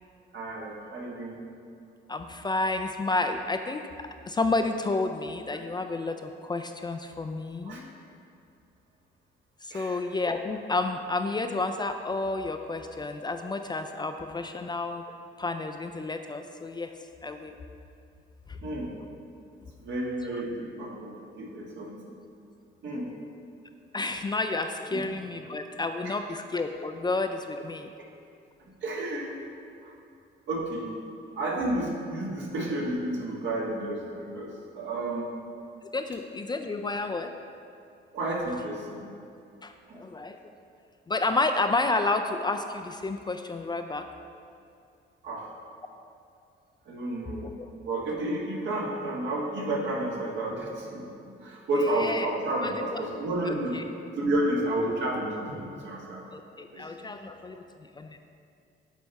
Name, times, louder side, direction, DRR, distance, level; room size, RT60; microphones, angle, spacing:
voice 1, 0.3-1.4 7.6-7.8 9.7-10.0 18.6-18.9 19.8-22.0 22.8-23.1 24.9-25.0 28.8-29.3 29.8-29.9 30.5-30.9 31.3-35.3 38.1-39.0 39.9-40.0 45.2-45.5 46.8-47.5 47.8-53.8 54.2-56.2 56.7-57.3, right 1 dB, 70° right, -2 dB, 1.4 m, -31 dB
voice 2, 2.1-7.9 9.6-16.9 17.2-17.6 18.5-18.6 20.3-20.4 23.9-27.9 35.9-37.3 39.6-40.4 41.1-44.1 47.4-47.7 51.8-52.3 52.6-53.0 53.5-53.8 56.3-58.2, left 3 dB, 20° left, 6 dB, 0.3 m, -31 dB
8.1 x 3.4 x 5.3 m, 2.5 s
cardioid pair, 90°, 20 cm